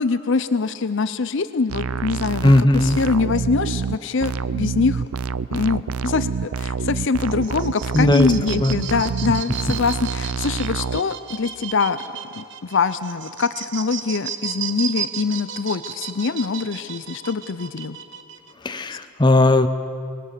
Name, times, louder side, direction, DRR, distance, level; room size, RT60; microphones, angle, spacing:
voice 1, 0.0-5.0 5.5-12.0 12.3-18.0 18.9-19.0, left 4 dB, 55° left, 13 dB, 0.6 m, -24 dB
sound 1, 1.7-11.0, right 5 dB, 75° right, 0.5 m, -27 dB
voice 2, 2.4-3.0 7.9-8.3 8.6-8.8 18.6-19.7, left 1 dB, 20° left, 8 dB, 0.8 m, -16 dB
sound 2, 7.3-18.5, right 8 dB, 50° right, 1.0 m, -34 dB
25.0 x 21.0 x 6.8 m, 2.5 s
head